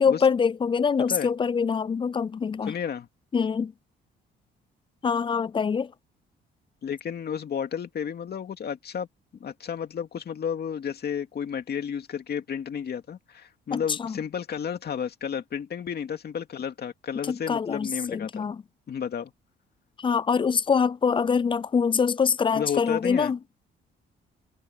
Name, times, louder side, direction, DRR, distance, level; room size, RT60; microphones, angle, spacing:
voice 1, 0.0-2.7 3.3-3.7 5.0-5.9 13.7-14.2 17.3-18.6 20.0-23.4, left 6 dB, 25° left, 0.4 m, -24 dB
voice 2, 2.6-3.1 6.8-9.1 9.4-18.5 18.9-19.3 22.5-23.3, left 7 dB, 55° left, 2.4 m, -32 dB
cardioid pair, 90°, 20 cm